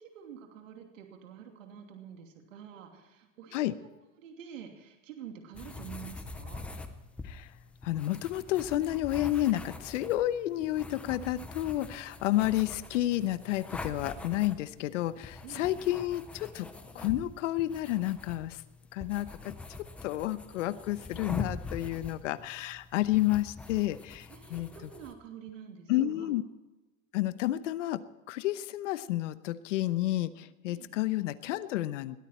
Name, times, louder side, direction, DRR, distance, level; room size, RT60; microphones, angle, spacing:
voice 1, 0.0-3.9 4.2-6.6 15.4-15.7 24.3-26.3 30.7-31.0, right 8 dB, 80° right, 3 dB, 2.9 m, -48 dB
sound 1, 5.5-25.1, left 3 dB, 5° left, 0.4 m, -44 dB
voice 2, 7.8-16.7 16.9-18.6 18.9-19.5 20.0-24.2 24.5-24.7 25.9-26.4 27.1-28.0 28.3-30.3 30.6-32.2, left 15 dB, 70° left, 14 dB, 1.0 m, -30 dB
21.0 x 13.5 x 4.4 m, 1.1 s
supercardioid pair, 160°, 39 cm